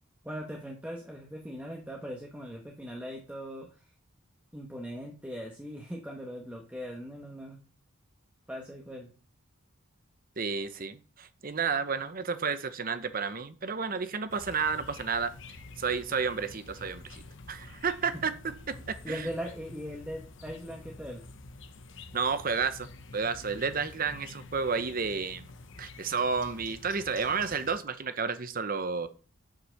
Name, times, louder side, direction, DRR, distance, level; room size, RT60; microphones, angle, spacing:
voice 1, 0.2-3.8 4.5-7.6 8.5-9.1 18.1-18.2 19.0-21.2, equal, 5° right, -1 dB, 1.2 m, -40 dB
voice 2, 10.4-15.3 15.8-17.2 17.5-19.3 22.1-25.5 25.8-29.1, right 5 dB, 40° right, 12 dB, 0.8 m, -31 dB
sound 1, 14.3-27.8, left 2 dB, 60° left, 1.0 m, -48 dB
7.8 x 5.9 x 6.5 m, 0.38 s
head